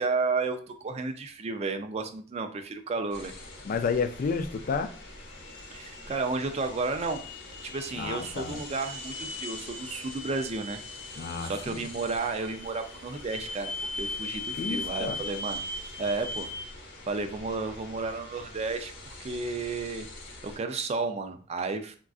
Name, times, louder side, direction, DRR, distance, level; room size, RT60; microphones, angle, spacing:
voice 1, 0.0-3.3 5.7-7.2 7.6-10.8 11.4-13.7 14.0-15.6 16.0-16.5 17.1-20.1 20.4-22.0, right 3 dB, 35° right, 0.4 m, -32 dB
sound 1, 3.1-20.6, left 2 dB, 65° left, 0.8 m, -45 dB
voice 2, 3.7-4.9 8.0-8.6 11.2-11.9 14.5-15.2, left 5 dB, 45° left, 0.3 m, -31 dB
sound 2, 4.9-16.6, left 2 dB, 25° left, 1.1 m, -40 dB
3.7 x 2.4 x 2.3 m
head